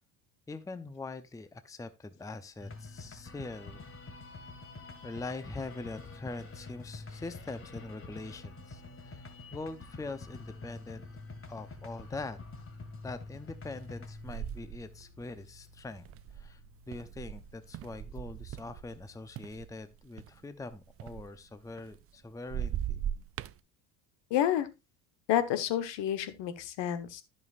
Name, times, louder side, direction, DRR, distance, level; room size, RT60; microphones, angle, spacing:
voice 1, 0.5-3.8 5.0-11.1 11.5-12.4 13.0-16.0 16.3-16.6 16.9-23.0, left 3 dB, 5° left, 0.8 m, -43 dB
sound 1, 2.6-19.7, left 3 dB, 25° left, 2.0 m, -48 dB
sound 2, 11.1-11.2 11.6-12.1 12.7-12.9 13.8-19.1 19.4-22.2 22.5-23.6, right 10 dB, 30° right, 0.3 m, -40 dB
voice 2, 24.3-24.7 25.3-27.2, left 11 dB, 60° left, 1.3 m, -29 dB
14.0 x 5.5 x 2.5 m
hypercardioid pair, 75°, 49 cm